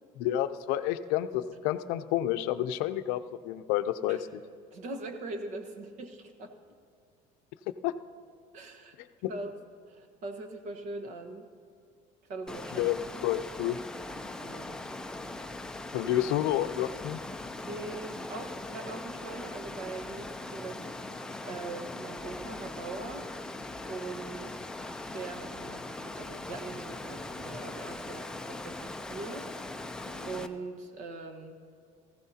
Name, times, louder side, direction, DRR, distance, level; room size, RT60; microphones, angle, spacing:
voice 1, 0.2-4.4 7.8-7.9 9.2-9.3 12.7-13.8 15.9-17.2, left 13 dB, 75° left, 11 dB, 0.6 m, -30 dB
voice 2, 4.7-6.5 8.5-8.9 9.3-9.5 9.9-11.5 12.3-13.0 14.2-14.8 17.7-20.8 21.4-23.3 23.9-24.6 25.1-29.5 30.1-31.6, right 3 dB, 50° right, 6 dB, 1.3 m, -41 dB
Water, 12.5-30.5, left 2 dB, 5° left, 0.4 m, -40 dB
19.0 x 15.0 x 2.8 m, 2.3 s
cardioid pair, 155°, 16 cm